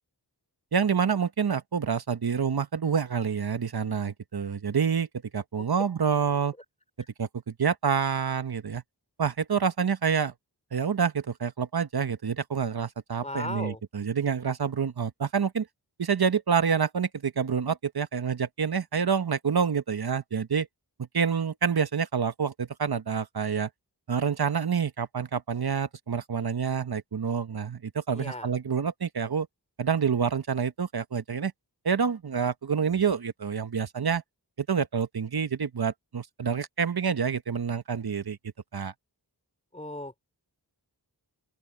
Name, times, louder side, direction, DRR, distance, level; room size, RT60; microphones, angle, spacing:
voice 1, 0.7-5.1 5.3-6.5 7.2-8.8 9.2-10.3 10.7-15.7 16.0-20.7 21.1-23.7 24.1-29.5 29.8-31.5 31.8-34.2 34.6-38.4 38.7-38.9, right 6 dB, 65° right, 1.0 m, -27 dB
voice 2, 13.2-13.8 28.1-28.5 39.7-40.2, left 1 dB, 15° left, 3.0 m, -37 dB
open air
wide cardioid pair, 70°, 41 cm